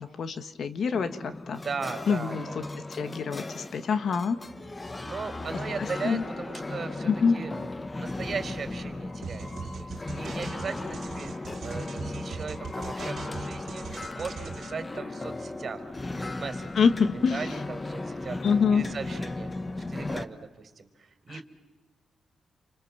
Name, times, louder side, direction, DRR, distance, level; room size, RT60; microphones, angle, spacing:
voice 1, 0.0-1.6 2.1-2.6 2.9-4.4 5.8-6.2 7.0-7.4 16.7-17.5 18.4-18.8 21.3-21.4, left 6 dB, 65° left, 11 dB, 1.6 m, -26 dB
sound 1, 0.9-20.3, left 2 dB, 25° left, 1.2 m, -36 dB
voice 2, 1.6-2.7 5.0-7.5 7.9-11.3 11.6-16.9 17.1-18.4 18.7-21.4, right 5 dB, 50° right, 8 dB, 3.8 m, -38 dB
sound 2, 9.2-14.7, right 6 dB, 65° right, 2.6 m, -40 dB
28.5 x 25.5 x 7.4 m, 1.1 s
cardioid pair, 90°, 0 cm